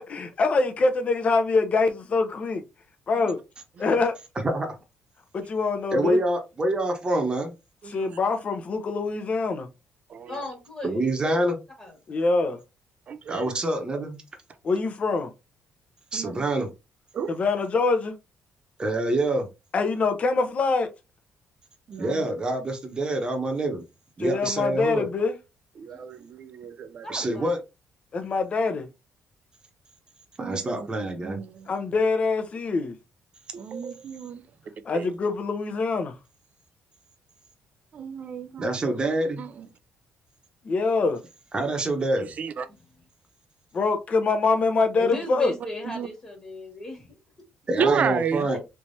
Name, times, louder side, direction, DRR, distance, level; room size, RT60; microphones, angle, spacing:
voice 1, 0.0-2.6 3.1-3.4 3.8-4.1 5.3-6.2 7.9-9.7 12.1-12.6 14.6-15.3 17.3-18.1 19.7-20.9 24.2-25.3 28.1-28.9 31.7-33.0 34.8-36.1 40.6-41.2 43.7-45.5, left 3 dB, 40° left, 0.7 m, -24 dB
voice 2, 5.9-7.5 10.8-11.6 13.3-14.2 16.1-16.7 18.8-19.5 22.0-23.8 24.2-25.1 27.1-27.6 30.4-31.4 38.6-39.4 41.5-42.3 47.7-48.6, right 1 dB, 25° right, 1.0 m, -26 dB
voice 3, 7.8-8.2 10.1-10.4 13.1-13.5 16.1-16.4 17.1-17.3 18.9-19.0 21.9-22.2 25.8-27.1 30.4-30.9 31.2-31.7 33.5-34.4 34.9-35.1 37.9-38.8 39.4-39.7 42.2-42.7 45.8-46.1 47.8-48.5, right 6 dB, 45° right, 0.4 m, -31 dB
voice 4, 10.3-11.0 11.8-12.0 25.9-26.0 27.0-27.5 45.0-47.2 47.9-48.1 48.5-48.6, left 2 dB, 25° left, 1.4 m, -36 dB
3.4 x 3.0 x 2.6 m
cardioid pair, 105°, 3 cm